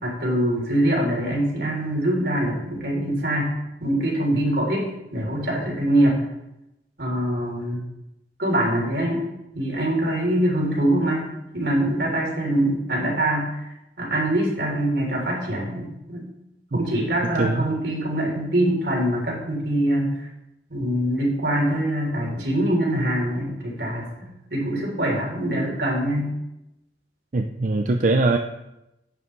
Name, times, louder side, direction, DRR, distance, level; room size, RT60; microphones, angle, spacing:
voice 1, 0.0-3.5 3.8-6.3 7.0-7.8 8.4-13.7 14.0-16.3 16.7-20.3 20.7-24.1 24.5-26.3, right 1 dB, 75° right, -2 dB, 3.6 m, -24 dB
voice 2, 17.3-17.7 27.3-28.4, right 2 dB, 45° right, 4 dB, 0.5 m, -21 dB
10.5 x 9.7 x 3.3 m, 0.90 s
head